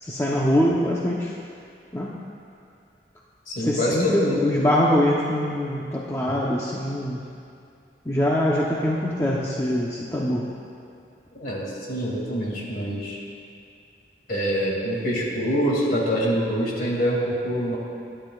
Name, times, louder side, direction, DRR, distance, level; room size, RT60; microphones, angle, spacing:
voice 1, 0.0-1.3 1.9-2.1 3.6-7.2 8.0-10.4, left 1 dB, 15° left, -5 dB, 0.9 m, -23 dB
voice 2, 3.5-4.6 11.3-13.2 14.3-17.8, equal, 50° left, -3 dB, 2.5 m, -25 dB
20.5 x 11.5 x 2.4 m, 2.4 s
head